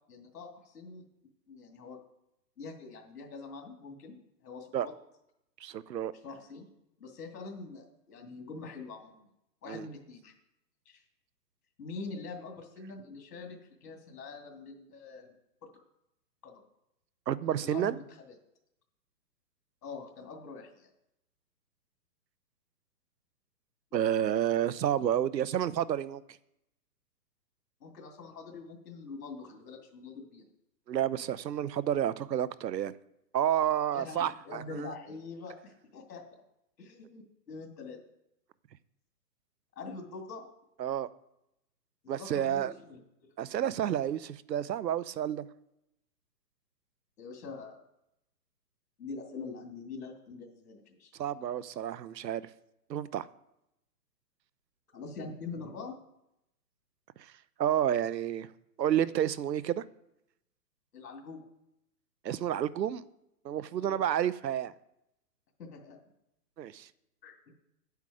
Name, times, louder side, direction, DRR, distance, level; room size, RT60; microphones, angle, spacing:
voice 1, 0.1-1.0 1.5-2.0 2.6-4.2 4.4-4.9 6.2-6.7 7.0-9.3 9.6-10.3 10.9-11.0 11.8-15.3 15.6-15.7 16.4-16.6 17.6-18.0 18.3-18.4 19.8-20.9 27.8-30.5 33.9-36.2 36.8-38.0 39.8-40.5 42.0-43.4 47.2-47.8 49.0-51.1 54.9-56.0 60.9-61.4 63.8-64.0 65.6-66.0 67.2-67.5, left 4 dB, 70° left, 2.4 m, -44 dB
voice 2, 5.6-6.1 9.7-9.9 17.3-17.9 23.9-26.2 30.9-32.9 33.3-34.9 40.8-41.1 42.1-42.7 43.4-45.5 51.2-52.5 52.9-53.3 57.2-57.3 57.6-58.5 58.8-59.8 62.2-63.0 63.4-64.7 66.6-66.9, right 10 dB, 85° right, 0.8 m, -30 dB
10.0 x 8.2 x 4.8 m
hypercardioid pair, 170°, 49 cm